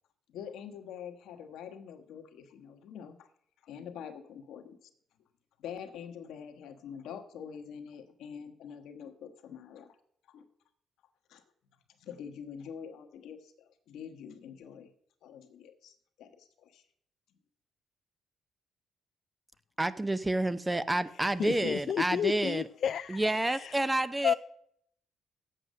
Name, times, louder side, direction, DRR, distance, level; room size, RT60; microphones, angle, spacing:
voice 1, 0.3-3.3 3.6-4.9 5.6-10.0 10.3-10.5 11.3-11.4 12.0-14.9 15.2-16.8, left 7 dB, 85° left, 1.2 m, -45 dB
voice 2, 19.8-22.7 23.1-24.3, right 1 dB, 15° right, 0.6 m, -29 dB
voice 3, 21.4-23.8 24.2-24.3, left 8 dB, 65° left, 0.4 m, -31 dB
7.9 x 7.9 x 6.5 m
cardioid pair, 90°, 0 cm